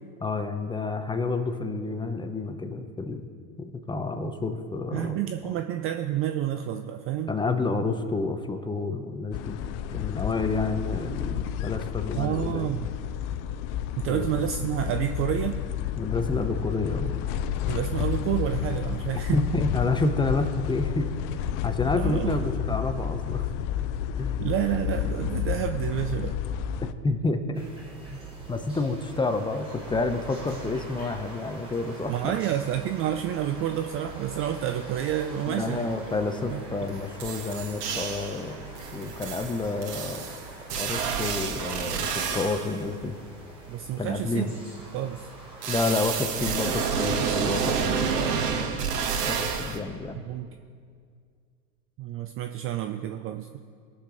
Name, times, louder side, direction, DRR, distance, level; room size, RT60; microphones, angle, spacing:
voice 1, 0.2-3.3 3.6-5.2 7.3-9.6 9.9-12.7 14.1-14.5 16.0-17.1 19.3-21.1 21.6-23.5 24.2-24.4 26.8-27.6 28.1-28.2 28.5-32.3 35.5-40.3 40.8-43.2 44.0-44.5 45.7-48.7 49.3-50.2, left 3 dB, 10° left, 7 dB, 0.7 m, -29 dB
voice 2, 4.9-7.3 12.2-12.9 14.0-15.6 17.7-19.4 21.9-22.4 24.4-26.4 32.1-36.0 36.5-36.9 43.7-44.5 44.9-45.3 50.2-50.5 52.0-53.6, right 11 dB, 30° right, 7 dB, 0.4 m, -29 dB
sound 1, 9.3-26.9, left 10 dB, 45° left, 0.6 m, -31 dB
sound 2, 27.5-47.1, right 2 dB, 10° right, 3.1 m, -43 dB
sound 3, 36.9-37.0 37.2-38.4 38.8-42.8 45.6-49.8, right 6 dB, 85° right, 1.4 m, -29 dB
19.5 x 6.7 x 3.9 m, 2.1 s
hypercardioid pair, 110°, 46 cm